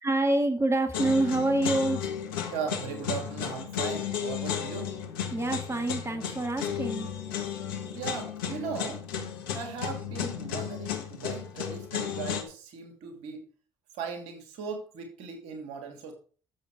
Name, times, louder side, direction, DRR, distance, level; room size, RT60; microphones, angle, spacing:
voice 1, 0.0-2.1 5.3-7.1, right 2 dB, 25° right, 7 dB, 2.1 m, -26 dB
sound 1, 0.9-12.4, left 8 dB, 80° left, 1.4 m, -34 dB
voice 2, 2.5-5.0 7.9-9.0 9.5-13.5 13.9-16.1, right 6 dB, 70° right, 5 dB, 2.7 m, -38 dB
14.0 x 7.2 x 4.9 m, 0.40 s
hypercardioid pair, 50°, 12 cm